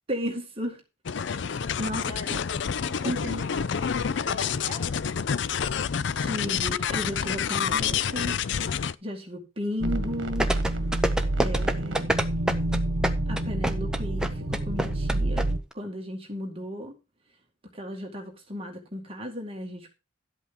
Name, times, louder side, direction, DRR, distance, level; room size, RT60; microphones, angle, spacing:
voice 1, 0.1-0.8 1.8-2.4 3.0-3.4 6.1-8.4 8.7-10.5 11.4-12.1 13.3-15.5 15.7-16.9 17.7-19.9, left 1 dB, 30° right, 2.1 m, -34 dB
sound 1, 1.1-9.0, left 7 dB, 65° left, 0.4 m, -28 dB
voice 2, 2.0-2.4 2.8-5.0, left 2 dB, 40° left, 3.1 m, -42 dB
sound 2, 9.8-15.6, right 1 dB, 65° right, 1.6 m, -28 dB
sound 3, 10.4-15.4 15.7-15.8, right 1 dB, 5° right, 0.7 m, -25 dB
12.5 x 8.2 x 3.8 m
head